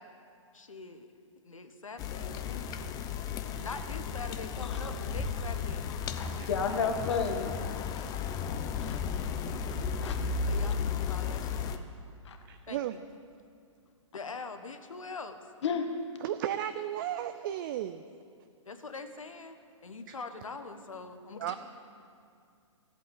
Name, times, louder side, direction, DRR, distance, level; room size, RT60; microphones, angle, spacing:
voice 1, 0.5-1.1 1.4-2.8 3.6-5.9 10.5-11.6 12.7-13.0 14.1-15.4 18.6-19.6 19.8-21.6, left 4 dB, 85° left, 8 dB, 1.4 m, -43 dB
sound 1, 2.0-11.8, left 6 dB, 20° left, 0.7 m, -34 dB
voice 2, 6.1-7.6 7.9-8.1 8.8-9.3 9.7-10.2 12.3-12.4 15.6-15.9 21.5-21.6, left 6 dB, 60° left, 5 dB, 1.8 m, -33 dB
voice 3, 12.5-13.0 16.2-18.0 21.4-21.6, right 11 dB, 40° right, 10 dB, 0.5 m, -34 dB
14.5 x 8.3 x 9.5 m, 2.3 s
hypercardioid pair, 130°, 17 cm